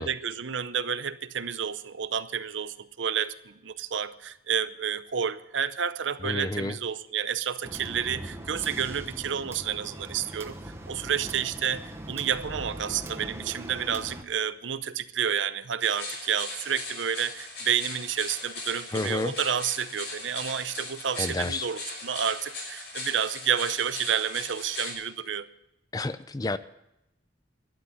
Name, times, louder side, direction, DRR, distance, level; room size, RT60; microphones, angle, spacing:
voice 1, 0.0-10.6 10.9-25.5, right 8 dB, 80° right, 0.7 m, -30 dB
voice 2, 6.2-6.8 18.9-19.3 21.2-21.7 25.9-26.6, left 2 dB, 20° left, 0.4 m, -30 dB
sound 1, 7.6-14.2, right 1 dB, 15° right, 1.0 m, -41 dB
sound 2, 15.8-24.9, left 2 dB, 60° left, 5.9 m, -39 dB
12.0 x 12.0 x 7.1 m
head